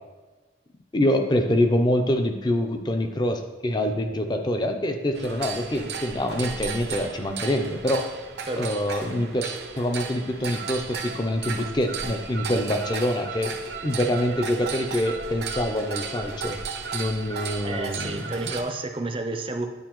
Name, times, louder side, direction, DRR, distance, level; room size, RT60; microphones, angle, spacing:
voice 1, 0.9-8.1 8.6-13.6 13.8-16.6 16.9-18.3, left 1 dB, 25° left, 6 dB, 0.5 m, -25 dB
sound 1, 5.1-18.6, right 5 dB, 65° right, 0.7 m, -34 dB
voice 2, 17.6-19.7, right 2 dB, 30° right, 5 dB, 0.5 m, -30 dB
9.2 x 4.6 x 3.0 m, 1.2 s
head